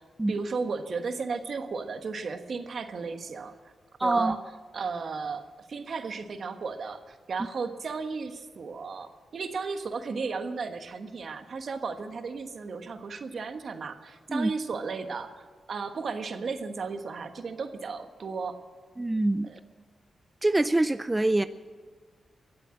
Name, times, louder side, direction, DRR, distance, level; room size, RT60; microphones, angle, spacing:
voice 1, 0.3-3.5 4.0-5.4 5.7-18.6 19.4-19.6, right 4 dB, 65° right, 8 dB, 1.3 m, -34 dB
voice 2, 4.0-4.4 14.3-14.5 19.0-19.5 20.4-21.5, right 2 dB, 20° right, 13 dB, 0.4 m, -25 dB
23.0 x 7.7 x 7.7 m, 1.5 s
cardioid pair, 65°, 0 cm